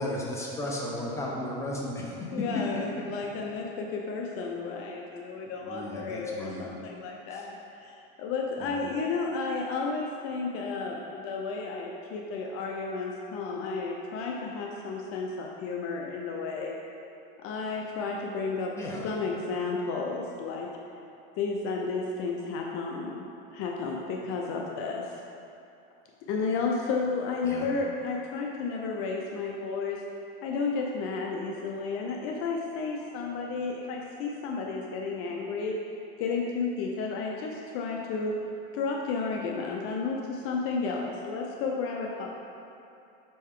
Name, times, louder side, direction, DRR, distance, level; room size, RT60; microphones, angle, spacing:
voice 1, 0.0-2.8 5.6-6.7 7.3-7.4 8.6-8.8 18.8-19.1 27.4-27.7, left 1 dB, 10° left, -4 dB, 1.0 m, -34 dB
voice 2, 2.3-16.8 17.4-18.7 19.0-20.7 21.4-23.3 23.5-25.2 26.3-30.0 30.4-35.8 36.2-38.4 38.7-42.3, left 4 dB, 50° left, 0 dB, 0.6 m, -32 dB
5.4 x 5.3 x 3.7 m, 2.7 s
supercardioid pair, 130°, 29 cm